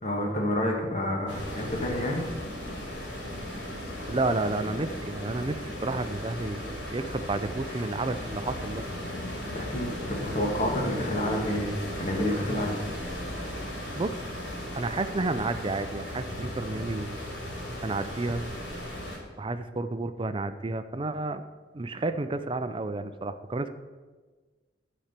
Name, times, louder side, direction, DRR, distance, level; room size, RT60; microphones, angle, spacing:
voice 1, 0.0-2.2 9.3-11.7 12.0-12.8, left 1 dB, 40° left, 0 dB, 1.6 m, -29 dB
sound 1, 1.3-19.2, left 1 dB, 85° left, 2.9 m, -36 dB
voice 2, 4.1-8.8 14.0-14.2 14.7-17.2 17.8-18.4 19.4-21.4 21.7-23.7, right 2 dB, 30° right, 10 dB, 0.5 m, -31 dB
12.0 x 4.4 x 6.6 m, 1.4 s
head